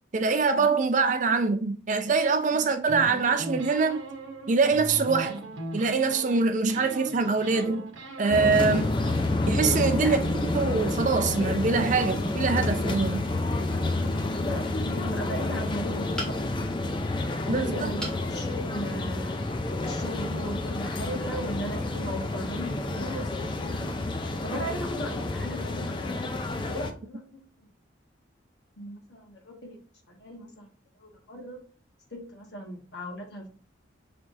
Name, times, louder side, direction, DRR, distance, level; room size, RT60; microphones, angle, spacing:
voice 1, 0.1-4.0 4.5-5.4 5.7-7.9 8.2-8.8 9.5-13.3 17.5-17.9, right 4 dB, 40° right, 0.4 m, -24 dB
sound 1, 2.9-6.4 6.7-9.4, right 1 dB, 85° right, 0.9 m, -38 dB
sound 2, 8.3-26.9, left 2 dB, 25° left, 0.4 m, -29 dB
voice 2, 14.4-16.9 17.4-19.4 19.8-26.2 26.6-27.4 28.8-29.8 30.1-30.7 31.0-31.6 32.1-33.5, equal, 55° left, 1.5 m, -37 dB
sound 3, 16.2-16.7 18.0-18.3 18.8-18.9 19.3-19.4, equal, 5° left, 1.4 m, -36 dB
5.9 x 3.3 x 2.6 m
head